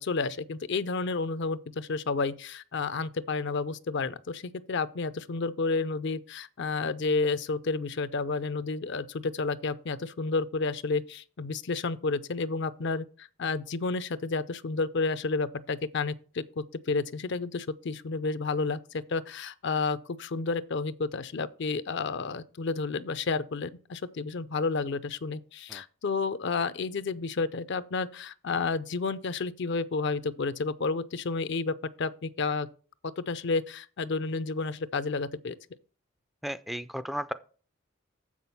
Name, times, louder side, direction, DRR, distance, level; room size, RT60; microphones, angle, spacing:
voice 1, 0.0-4.4 4.7-32.7 33.2-35.6, left 4 dB, 60° left, 0.5 m, -31 dB
voice 2, 36.4-37.3, equal, ahead, 0.3 m, -34 dB
7.5 x 6.1 x 5.5 m
head